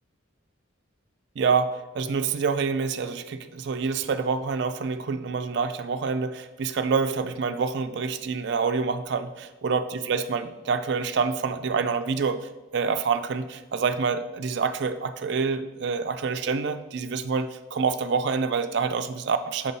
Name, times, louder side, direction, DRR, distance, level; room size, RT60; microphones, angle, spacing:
voice 1, 1.4-12.4 12.7-19.7, right 5 dB, 55° right, 9 dB, 0.4 m, -27 dB
6.4 x 2.7 x 5.4 m, 1.2 s
head